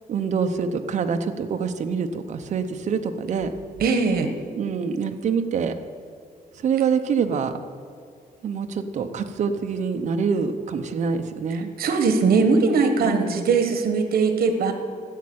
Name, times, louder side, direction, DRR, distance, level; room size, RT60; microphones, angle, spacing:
voice 1, 0.1-3.5 4.5-5.7 6.6-7.5 8.4-11.7 13.0-13.5, right 6 dB, 50° right, 7 dB, 0.8 m, -25 dB
voice 2, 3.8-4.3 11.8-14.7, right 4 dB, 75° right, 7 dB, 1.3 m, -20 dB
12.0 x 7.5 x 8.7 m, 2.2 s
wide cardioid pair, 180°, 16 cm